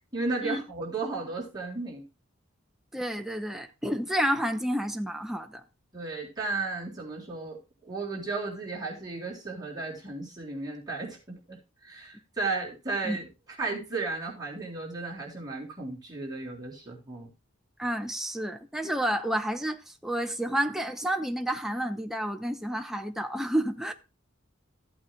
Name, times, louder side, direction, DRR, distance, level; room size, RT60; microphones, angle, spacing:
voice 1, 0.1-2.0 5.9-13.3 13.6-17.3, right 3 dB, 20° right, 3.6 m, -34 dB
voice 2, 2.9-5.6 13.0-13.2 17.8-23.9, right 1 dB, ahead, 0.7 m, -30 dB
15.0 x 8.6 x 2.3 m
head